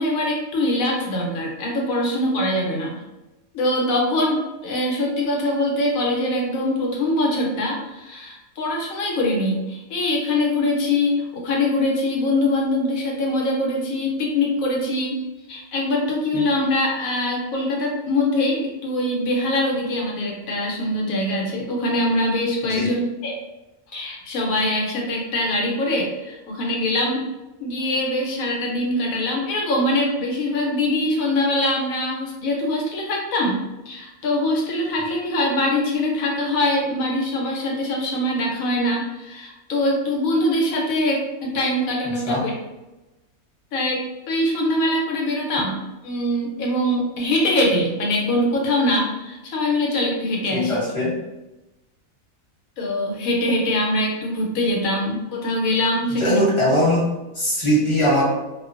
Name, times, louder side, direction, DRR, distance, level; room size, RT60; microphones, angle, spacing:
voice 1, 0.0-3.0 3.5-15.2 15.5-23.4 23.9-27.2 27.6-33.6 33.9-42.5 43.7-50.8 52.8-56.4, left 1 dB, 75° left, 0 dB, 1.0 m, -23 dB
voice 2, 50.5-51.1 56.2-57.1 57.3-58.2, equal, 25° left, -9 dB, 0.9 m, -20 dB
2.5 x 2.2 x 2.4 m, 1.0 s
omnidirectional pair, 1.5 m